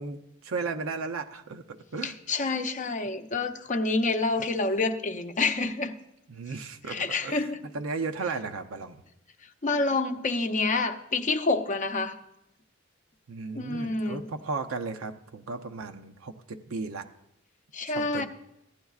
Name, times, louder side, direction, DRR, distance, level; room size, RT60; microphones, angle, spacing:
voice 1, 0.0-2.1 4.4-4.5 6.3-7.5 7.7-9.0 13.3-17.1 17.9-18.3, right 4 dB, 80° right, 7 dB, 0.6 m, -35 dB
voice 2, 2.0-5.9 6.9-7.6 9.6-12.2 13.5-14.2 17.7-18.3, left 3 dB, 40° left, 7 dB, 0.6 m, -28 dB
15.0 x 10.0 x 2.4 m, 0.83 s
head